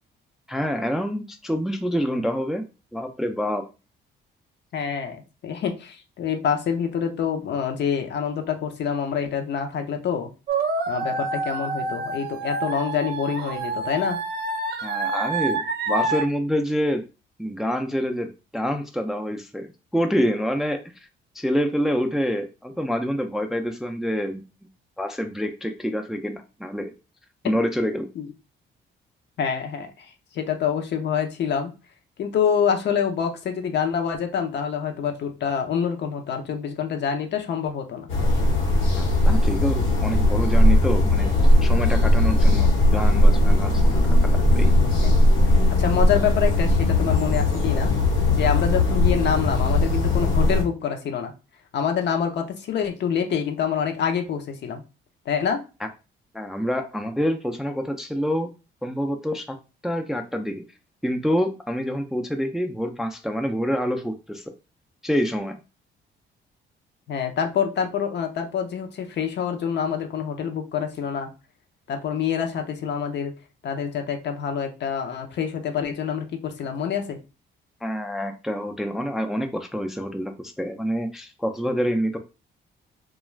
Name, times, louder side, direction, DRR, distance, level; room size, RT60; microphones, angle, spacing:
voice 1, 0.5-2.7 2.9-3.7 14.8-17.0 17.4-21.1 21.3-24.4 25.0-26.9 27.4-28.1 39.0-41.4 41.6-44.7 56.3-58.5 58.8-59.6 59.8-60.6 61.0-64.5 65.0-65.6 77.8-82.2, equal, ahead, 5 dB, 0.3 m, -27 dB
voice 2, 4.7-10.3 10.9-14.2 28.2-28.3 29.4-31.7 32.2-38.1 45.0-45.2 45.8-47.9 48.3-51.3 51.7-54.8 55.3-55.6 67.1-71.3 71.9-73.3 73.6-77.2, left 7 dB, 60° left, 5 dB, 0.6 m, -26 dB
sound 1, 10.5-16.2, right 3 dB, 50° right, 0.5 m, -27 dB
sound 2, 38.1-50.6, left 1 dB, 90° left, 1.1 m, -18 dB
2.3 x 2.3 x 3.1 m, 0.31 s
cardioid pair, 90°, 20 cm